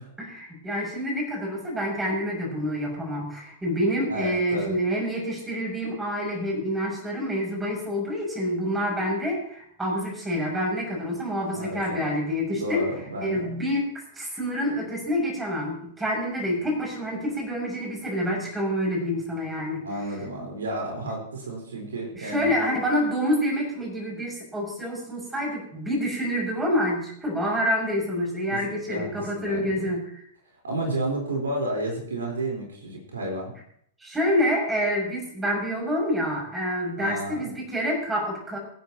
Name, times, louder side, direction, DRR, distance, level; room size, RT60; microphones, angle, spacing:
voice 1, 0.2-12.9 13.2-19.8 22.1-30.2 34.0-38.6, equal, 10° right, -2 dB, 6.6 m, -27 dB
voice 2, 4.1-4.8 11.5-12.1 12.5-13.6 19.8-22.5 28.5-29.9 30.6-33.5 37.0-37.5, right 1 dB, 70° right, 0 dB, 4.4 m, -32 dB
24.5 x 10.0 x 3.0 m, 0.66 s
figure-of-eight pair, 100°, 0 cm